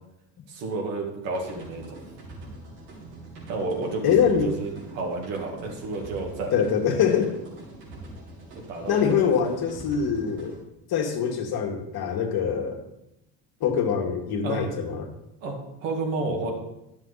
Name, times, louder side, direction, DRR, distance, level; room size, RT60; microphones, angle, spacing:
voice 1, 0.5-2.0 3.5-6.5 8.6-9.3 14.4-14.6 15.4-16.5, right 3 dB, 65° right, 0 dB, 2.5 m, -31 dB
sound 1, 1.3-10.6, right 2 dB, 85° right, 3.4 m, -44 dB
voice 2, 4.0-4.5 6.5-7.3 8.9-10.6 10.9-12.8 13.6-15.1, left 7 dB, 50° left, 2 dB, 1.9 m, -24 dB
11.0 x 7.1 x 4.1 m, 0.88 s
hypercardioid pair, 75°, 47 cm